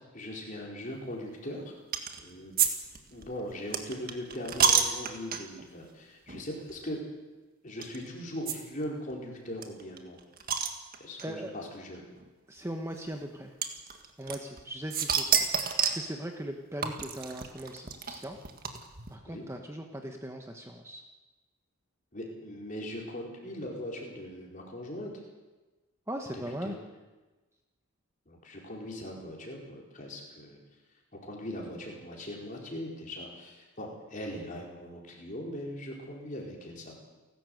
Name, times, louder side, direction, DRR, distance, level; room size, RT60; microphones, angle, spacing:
voice 1, 0.1-1.7 2.2-2.5 3.1-7.0 7.6-10.2 11.0-12.0 19.3-19.4 22.1-25.1 26.6-26.7 28.3-30.6 31.1-37.0, left 1 dB, 35° left, -1 dB, 4.6 m, -40 dB
sound 1, 1.9-2.2 2.6-5.7 6.3-6.4 6.7-6.8 7.8-8.0 8.5-8.6 8.8-8.9 9.1-9.2 9.6-11.3 12.2-12.3 13.6-14.6 14.9-16.1 16.8-19.1, right 7 dB, 40° right, 1.8 m, -29 dB
voice 2, 11.2-11.7 12.5-13.5 14.2-15.5 15.8-18.4 19.1-21.0 26.1-26.8, right 1 dB, 10° right, 3 dB, 1.2 m, -39 dB
29.5 x 12.5 x 7.9 m, 1.2 s
head